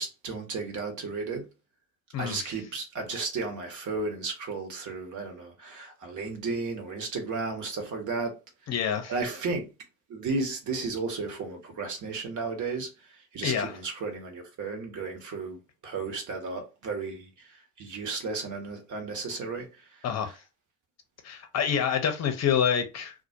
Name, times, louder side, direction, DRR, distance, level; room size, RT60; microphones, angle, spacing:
voice 1, 0.0-1.5 2.2-8.3 9.1-9.7 10.1-15.6 15.8-17.5 17.8-19.8 20.2-20.3, right 4 dB, 45° right, 1.0 m, -34 dB
voice 2, 2.1-2.5 8.7-9.1 13.4-13.7 20.0-20.3 21.2-23.1, left 8 dB, 35° left, 0.7 m, -27 dB
2.3 x 2.0 x 2.7 m
hypercardioid pair, 60°, 43 cm